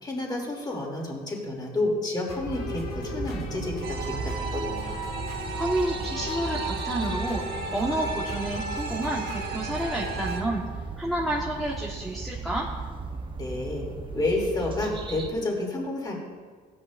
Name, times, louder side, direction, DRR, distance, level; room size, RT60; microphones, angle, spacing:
voice 1, 0.0-4.9 13.4-13.9 14.1-16.2, left 2 dB, 25° left, -2 dB, 3.0 m, -30 dB
sound 1, 2.3-10.4, left 2 dB, 65° left, 2.1 m, -38 dB
sound 2, 2.4-15.3, right 4 dB, 30° right, 1.0 m, -36 dB
sound 3, 3.8-10.4, right 4 dB, 75° right, 1.0 m, -36 dB
voice 2, 5.5-7.4 7.7-10.6 11.0-12.7, right 1 dB, ahead, -4 dB, 1.4 m, -30 dB
15.5 x 10.5 x 2.6 m, 1.5 s
cardioid pair, 110°, 17 cm